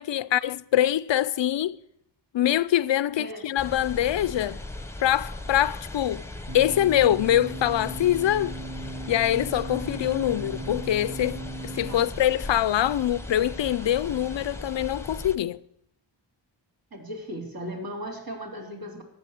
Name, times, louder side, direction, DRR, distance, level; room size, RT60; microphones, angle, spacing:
voice 1, 0.0-1.8 2.3-4.6 5.0-6.2 6.5-8.6 9.1-15.6, left 12 dB, 85° left, 0.6 m, -24 dB
sound 1, 3.6-15.4, left 2 dB, 5° left, 1.1 m, -38 dB
sound 2, 6.5-11.9, right 2 dB, 85° right, 2.6 m, -38 dB
voice 2, 16.9-19.0, equal, 55° right, 3.7 m, -37 dB
14.0 x 8.8 x 8.2 m
wide cardioid pair, 70°, 43 cm